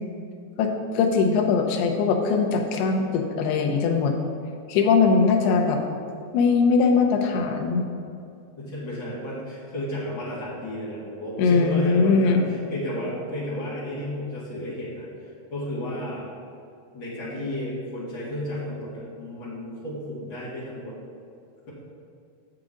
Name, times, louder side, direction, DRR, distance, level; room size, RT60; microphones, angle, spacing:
voice 1, 0.9-4.1 4.7-5.8 6.3-7.9 11.4-12.4, left 5 dB, 75° left, 3 dB, 2.4 m, -21 dB
voice 2, 8.6-16.3 16.9-21.0, left 1 dB, 40° left, -9 dB, 1.8 m, -33 dB
9.0 x 7.4 x 3.8 m, 2.5 s
omnidirectional pair, 5.3 m